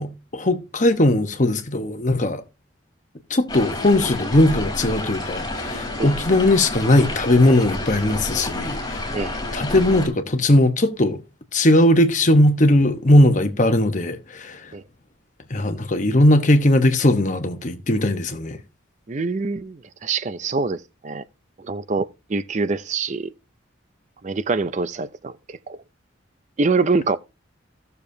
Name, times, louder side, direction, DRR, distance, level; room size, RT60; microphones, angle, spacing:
voice 1, 0.0-2.4 3.3-9.2 9.5-11.2 11.5-14.7 15.5-18.6, left 1 dB, 40° left, 1.0 m, -18 dB
sound 1, 3.5-10.1, left 2 dB, 20° left, 3.5 m, -29 dB
voice 2, 19.1-21.2 21.6-23.3 24.2-25.8 26.6-27.2, right 4 dB, 35° right, 0.4 m, -25 dB
16.0 x 6.8 x 2.7 m
head